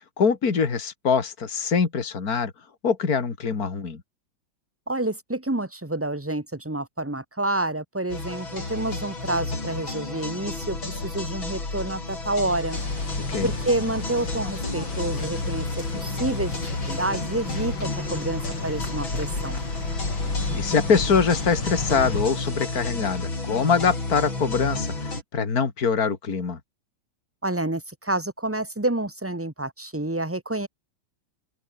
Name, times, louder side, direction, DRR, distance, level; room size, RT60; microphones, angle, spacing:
voice 1, 0.2-2.5 2.8-4.0 13.3-13.5 20.5-26.6, left 5 dB, 50° left, 3.0 m, -23 dB
voice 2, 4.9-12.8 13.4-15.7 15.9-19.6 27.4-30.7, right 2 dB, 10° right, 1.3 m, -28 dB
sound 1, 8.1-25.2, left 3 dB, 90° left, 7.0 m, -31 dB
sound 2, 12.7-22.2, left 3 dB, 70° left, 6.9 m, -33 dB
open air
omnidirectional pair, 2.1 m